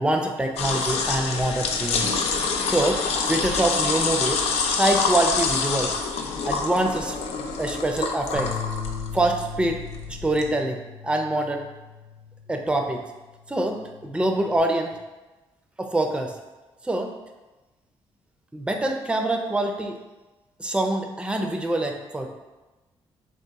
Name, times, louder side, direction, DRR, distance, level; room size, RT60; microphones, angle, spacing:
voice 1, 0.0-2.1 2.6-3.0 3.3-4.4 4.7-6.0 6.5-7.2 7.6-8.6 9.1-9.8 10.1-11.7 12.5-13.0 13.5-14.9 15.8-16.4 16.8-17.1 18.5-20.0 20.6-22.3, right 1 dB, 10° right, 3 dB, 0.5 m, -25 dB
sound 1, 0.6-10.5, left 5 dB, 80° left, 0.5 m, -26 dB
Bass guitar, 8.3-12.8 13.2-14.6, left 6 dB, 85° right, 0.6 m, -38 dB
3.6 x 2.8 x 3.5 m, 1.1 s
cardioid pair, 70°, 11 cm